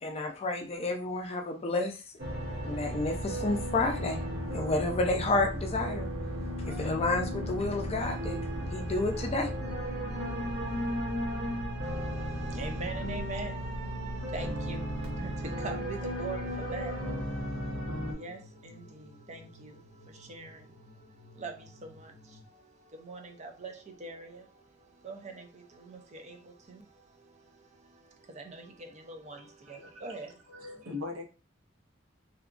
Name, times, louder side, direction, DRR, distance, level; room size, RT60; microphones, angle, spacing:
voice 1, 0.0-2.0 2.6-4.2 4.5-6.1 6.7-8.4 8.7-9.5, left 2 dB, 30° left, 4 dB, 0.4 m, -30 dB
sound 1, 2.2-18.1, equal, 55° right, 0.8 m, -35 dB
sound 2, 6.8-22.5, left 2 dB, 80° left, 0.5 m, -52 dB
voice 2, 11.8-30.9, right 3 dB, 35° right, 4 dB, 0.5 m, -44 dB
voice 3, 29.4-30.2 30.5-31.2, left 3 dB, 85° right, 3 dB, 0.7 m, -41 dB
2.8 x 2.3 x 2.5 m, 0.33 s
head